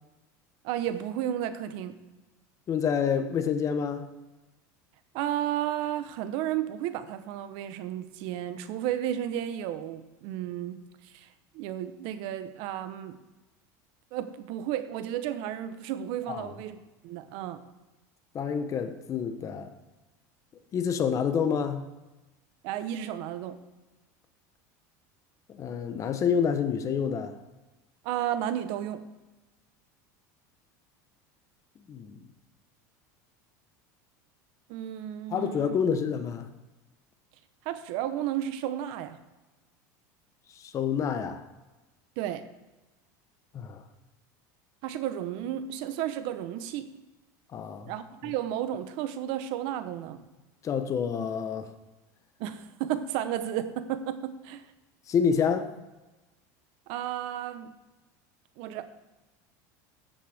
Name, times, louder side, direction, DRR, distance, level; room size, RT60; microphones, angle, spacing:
voice 1, 0.6-1.9 5.1-10.8 11.1-11.3 11.5-13.2 14.1-16.8 17.0-17.6 22.6-23.6 28.0-29.0 34.7-35.8 37.6-39.2 42.2-42.4 44.8-46.9 47.9-50.2 52.4-54.7 56.9-57.7 58.6-58.8, right 11 dB, 65° right, 1.0 m, -33 dB
voice 2, 2.7-4.1 16.3-16.5 18.3-19.7 20.7-21.8 25.5-27.3 31.9-32.2 35.3-36.5 40.5-41.5 43.5-43.8 47.5-47.9 50.6-51.7 55.1-55.7, left 7 dB, 35° left, 1.0 m, -28 dB
14.0 x 7.7 x 3.5 m
supercardioid pair, 115°, 9 cm